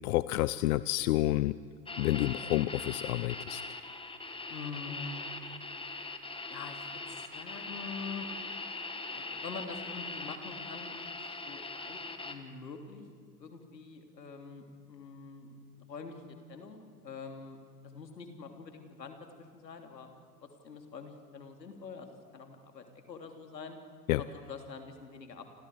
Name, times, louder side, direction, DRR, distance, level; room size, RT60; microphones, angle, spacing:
voice 1, 0.0-1.5 2.0-3.6 24.1-24.2, left 16 dB, 60° left, 17 dB, 0.7 m, -29 dB
sound 1, 1.9-12.3, left 3 dB, 10° left, 1.8 m, -41 dB
voice 2, 4.5-5.3 6.5-8.3 9.1-13.1 13.4-17.6 17.9-20.1 20.6-23.8 24.2-25.5, left 5 dB, 85° left, 5 dB, 3.0 m, -45 dB
29.0 x 27.5 x 4.8 m, 2.1 s
figure-of-eight pair, 85°, 49 cm